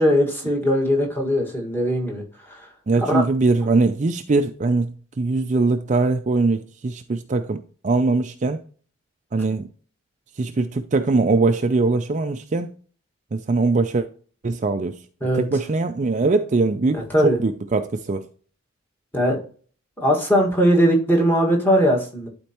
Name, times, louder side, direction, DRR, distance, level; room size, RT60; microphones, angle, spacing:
voice 1, 0.0-2.2 2.5-2.7 2.9-3.2 15.2-15.5 16.9-17.4 19.1-19.4 20.0-22.3, equal, 10° left, 1.7 m, -20 dB
voice 2, 2.9-8.6 9.3-9.7 10.4-12.7 13.3-14.1 14.4-15.0 15.3-18.3, right 3 dB, 35° right, 0.4 m, -21 dB
11.5 x 4.4 x 2.9 m
head